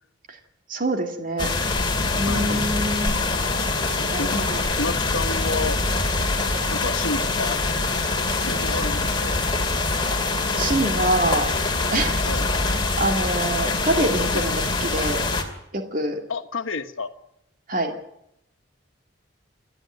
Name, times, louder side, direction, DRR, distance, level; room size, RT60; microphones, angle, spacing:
voice 1, 0.7-1.5 2.2-3.2 4.1-4.7 10.6-11.5 11.9-12.2 13.0-15.3 15.7-16.2 17.7-18.0, right 1 dB, 40° right, 4 dB, 2.3 m, -25 dB
sound 1, 1.4-15.4, left 3 dB, 25° left, 2.4 m, -24 dB
voice 2, 2.2-2.6 3.9-5.8 6.7-7.6 8.4-9.5 12.2-12.5 14.3-14.5 16.3-17.1, left 3 dB, 85° left, 9 dB, 1.3 m, -31 dB
27.5 x 11.0 x 9.2 m, 0.79 s
head